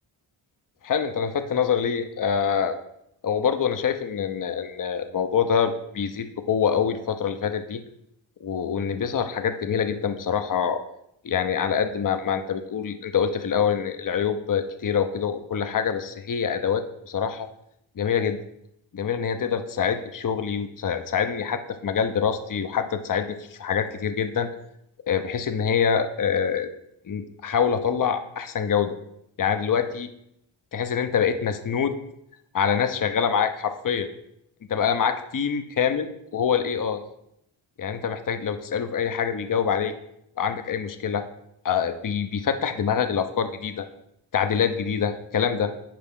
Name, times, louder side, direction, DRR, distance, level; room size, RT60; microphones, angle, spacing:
voice 1, 0.8-2.8 3.2-7.8 8.4-10.8 11.2-17.5 18.0-18.4 18.9-24.5 25.1-26.7 27.1-29.0 29.4-30.1 30.7-32.0 32.5-34.1 34.7-37.0 37.8-39.9 40.4-41.2 41.6-43.8 44.3-45.7, left 7 dB, 40° left, 9 dB, 0.7 m, -25 dB
10.5 x 4.7 x 3.7 m, 0.78 s
cardioid pair, 50°, 49 cm